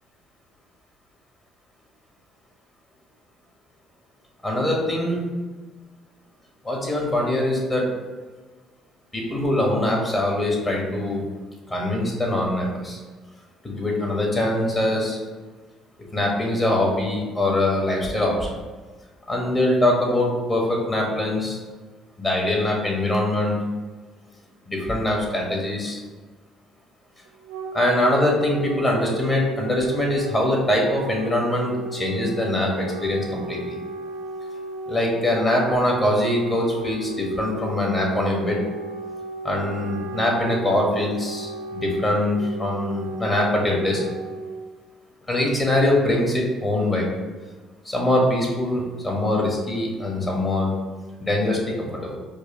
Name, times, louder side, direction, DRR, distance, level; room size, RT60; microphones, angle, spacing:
voice 1, 4.4-5.2 6.6-7.9 9.1-11.2 11.7-13.0 13.6-15.2 16.1-18.5 19.3-21.6 22.2-23.6 24.7-26.0 27.7-33.7 34.9-38.6 39.4-44.0 45.3-47.0 47.8-50.7 51.2-52.2, left 1 dB, 30° left, -1 dB, 1.4 m, -23 dB
Wind instrument woodwind instrument, 27.3-44.7, right 3 dB, 85° right, 0.4 m, -35 dB
4.6 x 2.5 x 2.9 m, 1.3 s
supercardioid pair, 65°, 0 cm